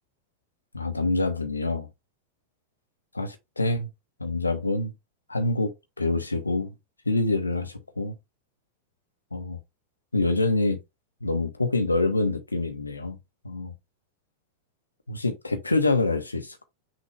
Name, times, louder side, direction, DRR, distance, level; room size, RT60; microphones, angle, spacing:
voice 1, 0.7-1.9 3.1-3.9 4.2-4.9 5.3-6.7 7.1-8.1 9.3-9.6 10.1-10.8 11.2-13.2 13.4-13.7 15.1-16.6, left 2 dB, 80° left, 1.0 m, -26 dB
5.8 x 2.7 x 3.3 m
figure-of-eight pair, 90°, 0 cm